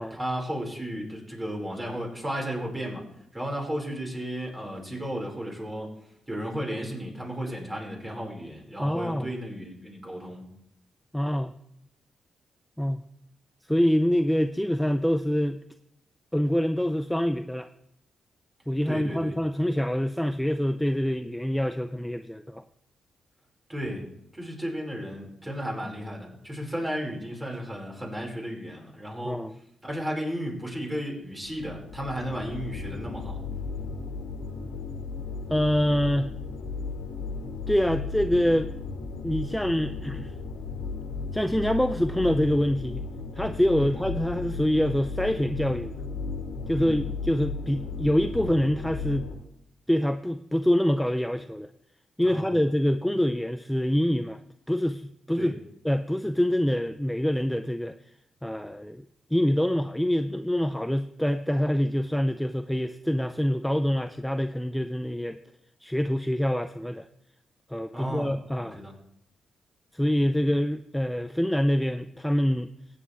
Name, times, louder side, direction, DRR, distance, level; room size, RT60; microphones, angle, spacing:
voice 1, 0.0-3.1 3.3-5.9 6.3-10.4 18.9-19.4 23.7-24.1 24.3-29.4 29.8-33.4 43.8-44.0 46.7-47.0 52.2-52.6 55.4-55.5 67.9-68.3 68.6-68.9, equal, 20° right, -1 dB, 5.1 m, -34 dB
voice 2, 8.8-9.3 11.1-11.5 12.8-13.0 13.7-15.6 16.3-17.7 18.7-22.6 29.2-29.6 35.5-36.3 37.7-38.7 39.2-40.3 41.3-43.0 43.4-45.9 46.7-49.3 49.9-51.7 52.2-54.4 54.7-55.5 55.8-58.0 58.4-59.0 59.3-65.4 65.8-67.1 67.7-68.8 69.9-72.7, equal, 5° left, 9 dB, 0.5 m, -25 dB
sound 1, 31.3-49.4, left 4 dB, 85° left, 1.9 m, -35 dB
16.0 x 8.5 x 3.4 m, 0.77 s
supercardioid pair, 45°, 0 cm